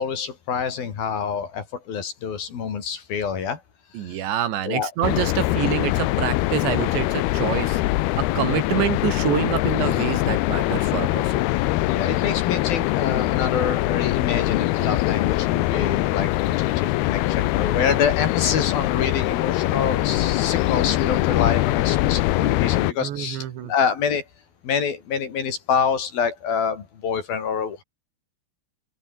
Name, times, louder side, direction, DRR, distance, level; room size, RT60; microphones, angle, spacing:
voice 1, 0.0-3.6 4.0-4.2 4.6-4.9 11.9-24.2 24.6-27.8, left 6 dB, 55° left, 4.9 m, -26 dB
voice 2, 3.9-7.8 8.2-11.4 23.0-23.7, right 11 dB, 75° right, 4.3 m, -26 dB
sound 1, 5.0-22.9, left 18 dB, 75° left, 2.5 m, -23 dB
open air
omnidirectional pair, 5.3 m